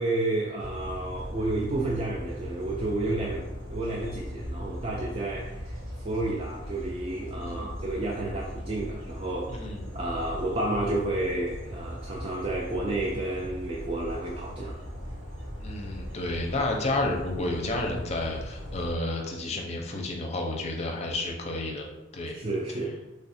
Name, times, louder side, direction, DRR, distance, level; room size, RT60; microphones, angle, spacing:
voice 1, 0.0-5.8 6.0-9.7 9.9-14.8 22.3-23.0, right 2 dB, 30° right, -2 dB, 0.3 m, -31 dB
sound 1, 0.6-18.9, equal, 85° right, 1.0 m, -39 dB
voice 2, 7.4-7.7 9.5-9.8 15.6-21.9 22.1-22.3, left 2 dB, 35° left, 1 dB, 0.5 m, -31 dB
3.2 x 2.4 x 4.1 m, 1.0 s
head